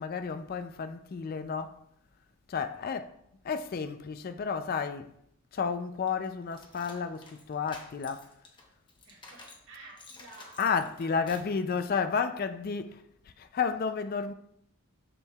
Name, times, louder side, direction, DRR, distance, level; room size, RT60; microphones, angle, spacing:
voice 1, 0.0-1.8 2.5-3.1 3.4-5.1 5.5-8.3 10.6-13.0 13.4-14.3, left 5 dB, 40° left, 0.3 m, -31 dB
voice 2, 2.8-3.2 9.0-10.7 11.0-11.5, right 3 dB, 55° right, 1.8 m, -53 dB
sound 1, 6.1-9.7 10.0-11.6, left 2 dB, 20° left, 0.8 m, -51 dB
6.9 x 6.5 x 2.3 m
head